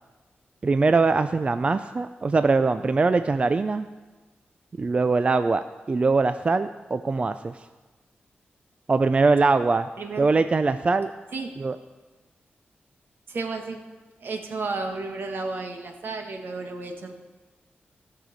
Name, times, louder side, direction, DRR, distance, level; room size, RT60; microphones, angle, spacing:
voice 1, 0.6-3.9 4.8-7.6 8.9-9.9 10.2-11.1 11.6-11.8, right 3 dB, 35° right, 11 dB, 0.3 m, -22 dB
voice 2, 10.0-10.3 11.3-11.5 13.3-13.8 14.2-17.1, right 3 dB, 70° right, 4 dB, 1.4 m, -32 dB
17.0 x 6.6 x 5.1 m, 1.3 s
wide cardioid pair, 105°, 4 cm